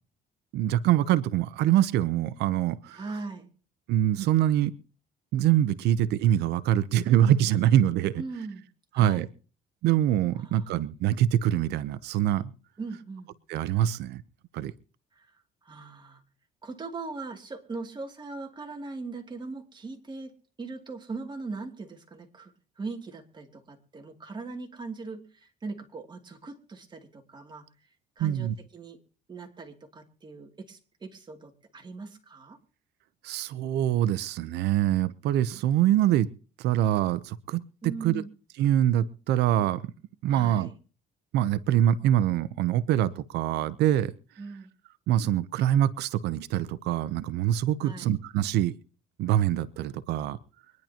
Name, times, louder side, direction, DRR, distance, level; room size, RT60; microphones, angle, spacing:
voice 1, 0.5-3.0 3.9-4.7 5.3-8.2 8.9-9.3 9.8-12.5 13.5-14.2 14.5-14.7 28.2-28.5 33.2-36.3 36.6-38.2 38.6-39.9 40.2-40.7 41.3-44.1 45.1-48.7 49.2-50.4, right 12 dB, 80° right, 15 dB, 0.8 m, -24 dB
voice 2, 2.9-3.5 5.8-5.9 8.1-8.7 8.9-9.2 10.4-10.8 12.8-13.3 15.7-16.2 16.6-20.3 20.6-22.5 22.8-27.7 28.2-29.0 29.3-32.6 37.8-38.3 40.3-40.7 44.4-44.7 47.8-48.2, right 3 dB, 25° right, 3 dB, 2.7 m, -40 dB
25.0 x 10.5 x 2.9 m, 0.39 s
cardioid pair, 110°, 17 cm